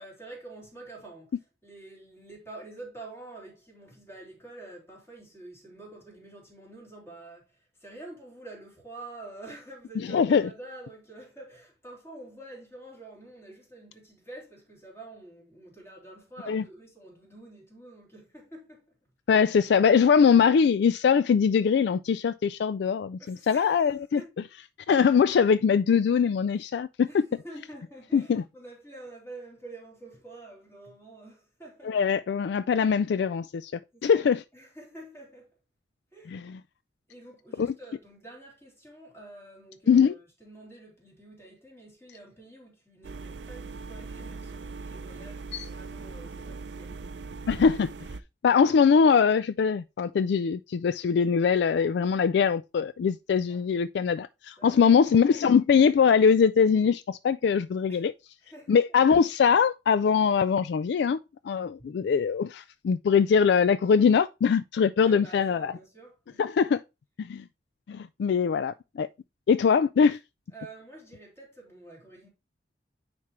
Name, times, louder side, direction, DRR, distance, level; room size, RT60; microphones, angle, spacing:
voice 1, 0.0-19.0 23.2-23.9 24.1-24.5 27.0-32.0 33.9-35.6 36.1-36.4 37.1-47.2 53.5-53.7 54.6-55.1 57.9-58.1 58.4-58.8 61.8-61.9 65.0-66.4 70.5-72.3, right 2 dB, 15° left, 3.2 m, -47 dB
voice 2, 10.1-10.5 16.5-16.6 19.3-24.2 24.9-27.2 28.1-28.4 31.9-33.7 34.0-34.4 36.3-36.4 37.6-37.7 39.9-40.1 47.5-47.9 48.4-58.1 58.7-61.2 61.4-65.7 66.4-66.8 67.2-67.4 67.9-69.1 69.5-70.2, left 6 dB, 65° left, 0.3 m, -22 dB
sound 1, 43.0-48.2, right 4 dB, 70° right, 0.5 m, -40 dB
9.4 x 4.5 x 3.1 m
head